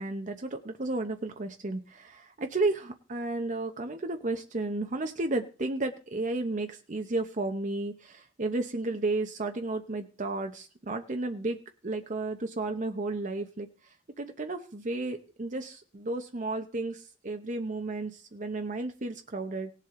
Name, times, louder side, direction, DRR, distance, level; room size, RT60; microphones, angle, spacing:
voice 1, 0.0-11.6 11.8-13.7 14.2-19.7, right 2 dB, 40° right, 5 dB, 0.9 m, -33 dB
18.5 x 7.5 x 3.8 m, 0.37 s
head